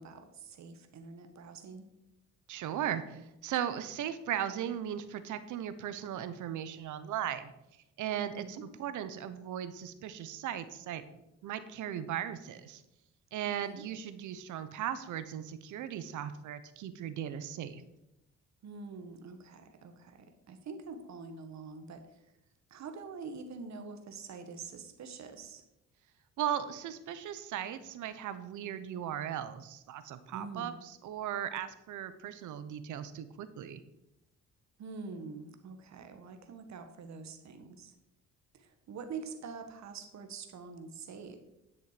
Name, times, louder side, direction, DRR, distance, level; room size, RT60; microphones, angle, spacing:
voice 1, 0.0-1.9 8.2-8.6 13.4-13.8 18.6-22.2 22.7-25.6 30.3-30.7 34.8-37.9 38.5-41.4, right 4 dB, 65° right, 7 dB, 1.5 m, -45 dB
voice 2, 2.5-7.5 8.0-11.0 11.4-12.8 13.3-17.8 26.4-33.8, right 10 dB, 80° right, 12 dB, 0.9 m, -37 dB
10.5 x 6.4 x 5.0 m, 0.89 s
cardioid pair, 90°, 30 cm